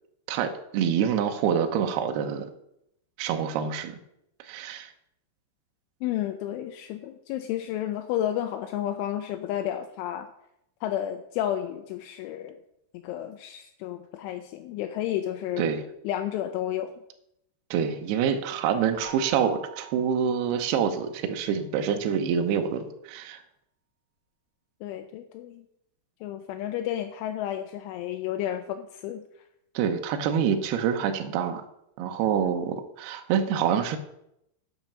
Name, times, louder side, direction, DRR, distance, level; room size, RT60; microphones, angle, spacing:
voice 1, 0.3-2.5 3.2-4.0 4.4-4.9 15.6-15.8 17.7-23.4 29.7-31.6 32.0-34.0, right 8 dB, 90° right, 6 dB, 2.3 m, -26 dB
voice 2, 6.0-10.3 10.8-12.6 13.0-15.6 16.0-16.9 24.8-25.7 26.2-29.2, left 11 dB, 85° left, 6 dB, 2.8 m, -31 dB
Keyboard (musical), 18.9-21.4, right 7 dB, 45° right, 4.7 m, -46 dB
10.5 x 6.1 x 6.8 m, 0.80 s
omnidirectional pair, 6.0 m